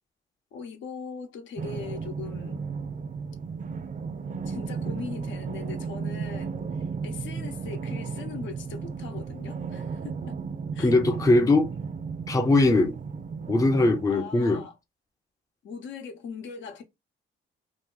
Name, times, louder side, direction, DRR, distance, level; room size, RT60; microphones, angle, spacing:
voice 1, 0.5-2.6 4.5-10.4 10.7-10.9 14.1-14.8 15.6-16.8, left 6 dB, 70° left, 0.9 m, -40 dB
sound 1, 1.6-14.1, right 5 dB, 40° right, 0.5 m, -34 dB
voice 2, 10.8-11.7 12.3-13.0 13.5-14.6, left 2 dB, 15° left, 0.5 m, -21 dB
2.8 x 2.5 x 3.8 m
cardioid pair, 90°, 20 cm